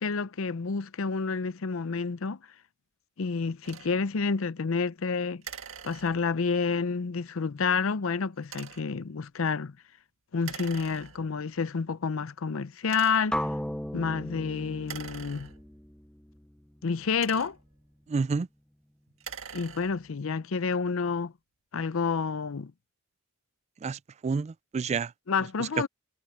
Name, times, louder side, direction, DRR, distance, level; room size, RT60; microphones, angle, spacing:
voice 1, 0.0-2.4 3.2-5.4 5.8-9.8 10.3-13.4 13.9-15.5 16.8-17.6 19.5-21.3 21.7-22.7 25.3-25.9, left 5 dB, 80° left, 0.6 m, -29 dB
sound 1, 3.6-3.9 5.4-6.5 8.4-9.0 10.4-11.4 12.1-12.2 12.8-13.4 14.8-15.9 16.9-17.8 19.1-20.2, right 7 dB, 75° right, 1.7 m, -44 dB
sound 2, 13.3-17.3, left 1 dB, 5° left, 0.6 m, -36 dB
voice 2, 18.1-18.5 23.8-25.1, right 4 dB, 35° right, 0.3 m, -29 dB
head